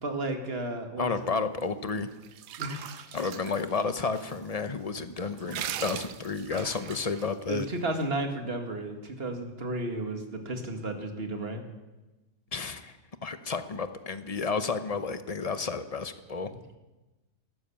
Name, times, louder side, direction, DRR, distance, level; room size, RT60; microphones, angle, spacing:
voice 1, 0.0-1.4 2.6-3.1 7.5-11.6, right 2 dB, 40° right, 5 dB, 2.1 m, -33 dB
voice 2, 1.0-2.1 3.1-7.7 12.5-12.9 13.2-16.5, left 4 dB, 35° left, 11 dB, 0.6 m, -31 dB
sound 1, 1.9-4.3 4.7-4.8 5.2-7.7, right 11 dB, 80° right, 1.3 m, -39 dB
13.0 x 12.5 x 8.5 m, 1.1 s
omnidirectional pair, 1.7 m